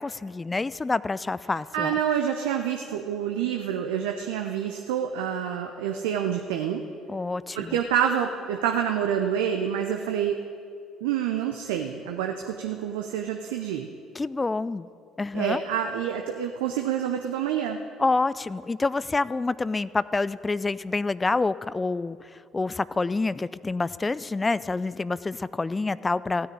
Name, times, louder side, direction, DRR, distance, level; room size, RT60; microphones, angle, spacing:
voice 1, 0.0-2.0 7.1-7.8 14.2-14.9 15.2-15.6 18.0-26.5, left 3 dB, 20° left, 18 dB, 0.4 m, -27 dB
voice 2, 1.7-6.8 7.5-10.4 11.0-13.9 15.3-17.8, right 9 dB, 75° right, 4 dB, 0.7 m, -27 dB
15.5 x 6.6 x 8.8 m, 2.4 s
hypercardioid pair, 55°, 0 cm